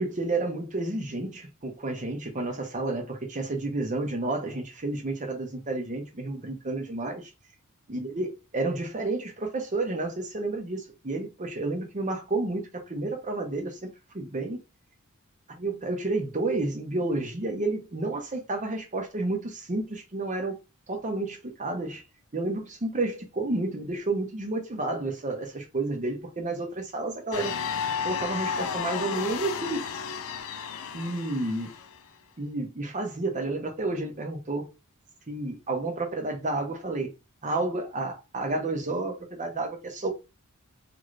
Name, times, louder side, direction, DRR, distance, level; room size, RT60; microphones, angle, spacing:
voice 1, 0.0-7.3 7.9-13.8 14.1-14.6 15.6-20.6 20.9-22.0 22.3-27.5 28.0-29.9 30.9-31.7 32.4-34.7 35.3-37.1 37.4-40.1, right 2 dB, 35° right, 0.8 m, -30 dB
sound 1, 27.3-32.0, left 6 dB, 65° left, 0.4 m, -33 dB
2.7 x 2.5 x 3.1 m
head